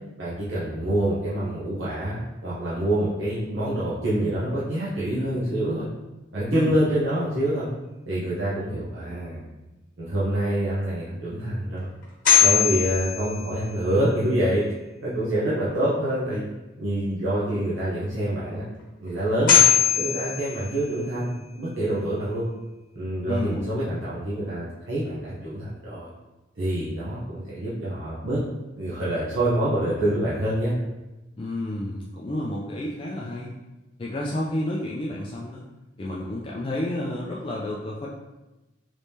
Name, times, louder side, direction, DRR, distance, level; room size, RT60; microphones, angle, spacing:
voice 1, 0.2-5.9 6.3-7.7 8.1-9.4 10.0-11.9 12.4-14.6 15.0-16.5 16.8-18.6 19.0-19.6 19.9-22.5 22.9-26.1 26.6-28.4 28.8-30.7, right 1 dB, 70° right, -9 dB, 0.8 m, -26 dB
sound 1, 12.0-14.1 19.1-19.2 19.5-21.4, left 8 dB, 45° left, 1.1 m, -21 dB
voice 2, 23.3-23.8 31.4-33.5 34.0-35.6 36.0-38.1, left 1 dB, 25° left, -4 dB, 0.3 m, -30 dB
3.4 x 3.1 x 2.7 m, 1.1 s
head